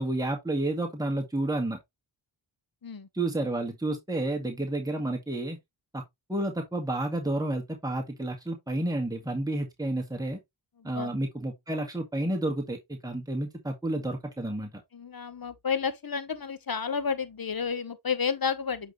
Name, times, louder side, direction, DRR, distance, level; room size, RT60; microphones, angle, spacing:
voice 1, 0.0-1.8 3.1-5.6 5.9-6.0 6.3-10.4 10.8-14.7, right 1 dB, 5° right, 1.8 m, -30 dB
voice 2, 10.8-11.1 14.9-18.9, left 6 dB, 45° left, 1.2 m, -31 dB
8.0 x 4.1 x 3.1 m
cardioid pair, 45°, 49 cm